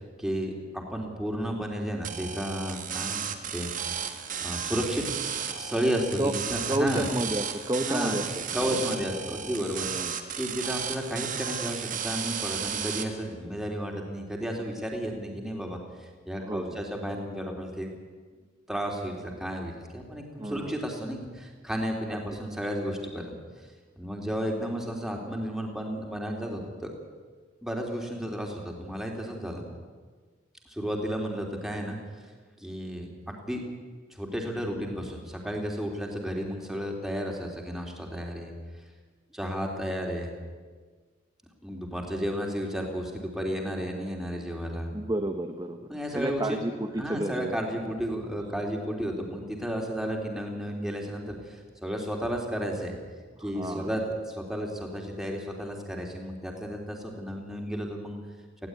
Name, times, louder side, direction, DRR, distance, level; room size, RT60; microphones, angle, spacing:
voice 1, 0.2-3.2 3.5-3.7 4.4-5.0 5.6-7.1 7.8-8.2 8.5-17.9 18.7-23.4 24.0-26.9 27.6-29.7 30.7-32.0 32.6-33.6 34.1-38.5 39.3-40.3 41.6-44.9 45.9-46.6 47.0-52.9 53.4-54.0 54.3-58.2, equal, ahead, 1 dB, 3.4 m, -33 dB
sound 1, 2.0-13.0, right 8 dB, 45° right, 1.8 m, -34 dB
voice 2, 6.7-8.4 8.7-9.0 9.9-10.2 16.4-16.8 20.4-20.8 22.1-22.2 25.0-25.1 44.9-47.6 47.9-48.0 53.4-54.0, right 1 dB, 20° right, 4 dB, 1.0 m, -31 dB
19.0 x 16.0 x 9.6 m, 1.5 s
head